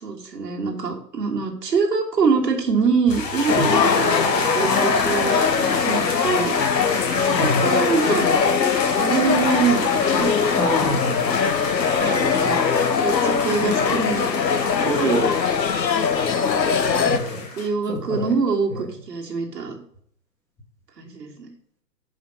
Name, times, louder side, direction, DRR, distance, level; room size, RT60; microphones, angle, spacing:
voice 1, 0.0-6.5 7.3-8.3 9.0-10.3 12.0-12.6 13.0-14.3 14.8-15.3 17.5-19.8 21.0-21.5, right 5 dB, 70° right, 0 dB, 1.8 m, -24 dB
sound 1, 3.1-17.7, left 4 dB, 50° left, 1.9 m, -28 dB
sound 2, 3.5-17.2, left 6 dB, 85° left, 0.8 m, -21 dB
voice 2, 7.3-7.7 10.6-11.4 17.0-17.5 17.9-18.3, equal, 5° left, -3 dB, 0.7 m, -27 dB
5.2 x 5.0 x 5.1 m, 0.66 s
figure-of-eight pair, 120°, 50 cm